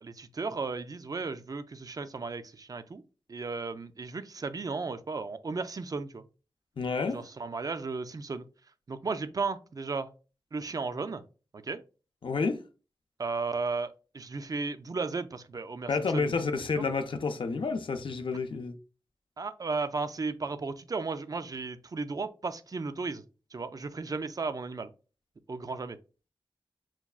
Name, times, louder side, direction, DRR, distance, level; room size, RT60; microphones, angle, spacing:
voice 1, 0.0-3.0 3.3-6.3 7.0-8.5 8.9-10.1 10.5-11.2 11.5-11.8 13.2-16.9 19.4-23.2 23.5-24.9 25.5-26.0, right 4 dB, 40° right, 0.4 m, -35 dB
voice 2, 6.8-7.2 12.2-12.6 15.9-18.7, left 4 dB, 65° left, 0.4 m, -30 dB
5.7 x 2.3 x 2.3 m
wide cardioid pair, 65°, 9 cm